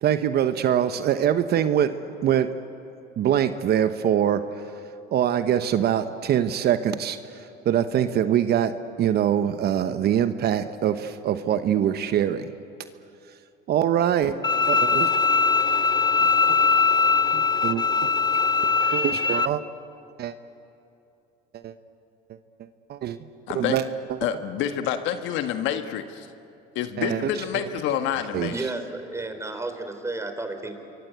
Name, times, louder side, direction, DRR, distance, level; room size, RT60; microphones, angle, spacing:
voice 1, 0.0-1.9 2.2-2.5 3.2-4.4 5.1-7.2 7.6-12.5 13.7-14.3 14.6-15.1 17.3-17.8 18.9-19.6 20.2-20.3 21.5-21.7 22.9-23.2 23.5-24.4 27.0-27.7 28.3-28.7, right 10 dB, 50° right, 10 dB, 1.0 m, -24 dB
Bowed string instrument, 14.4-19.5, left 5 dB, 20° left, 0.6 m, -21 dB
voice 2, 23.5-23.8 24.2-26.3 26.7-28.5, left 10 dB, 70° left, 8 dB, 1.5 m, -28 dB
voice 3, 28.5-30.8, right 2 dB, 15° right, 7 dB, 3.8 m, -32 dB
27.0 x 23.0 x 8.2 m, 2.7 s
supercardioid pair, 85°, 20 cm